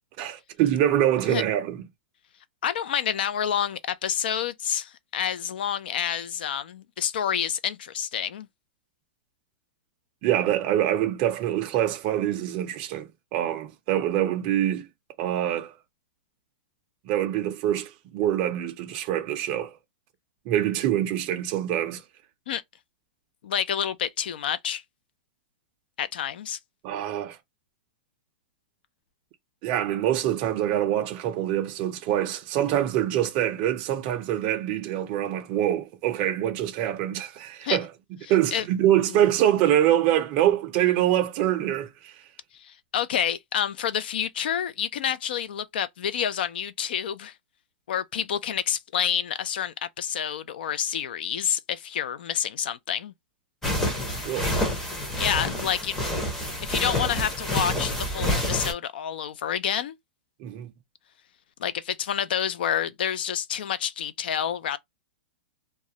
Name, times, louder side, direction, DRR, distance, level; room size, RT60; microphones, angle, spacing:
voice 1, 0.2-1.8 10.2-14.9 15.2-15.7 17.1-19.8 20.5-22.0 26.8-27.4 29.6-37.9 38.3-42.1 54.2-54.5 60.4-60.7, right 12 dB, 30° right, 0.4 m, -25 dB
voice 2, 2.6-8.5 22.5-22.6 23.4-24.8 26.0-26.6 37.6-37.8 38.5-38.6 42.5-47.3 47.9-53.1 55.2-56.0 56.3-59.9 61.6-64.8, left 9 dB, 70° left, 0.4 m, -28 dB
sound 1, 53.6-58.7, left 1 dB, 10° left, 0.6 m, -28 dB
2.3 x 2.0 x 2.6 m
hypercardioid pair, 160°, 6 cm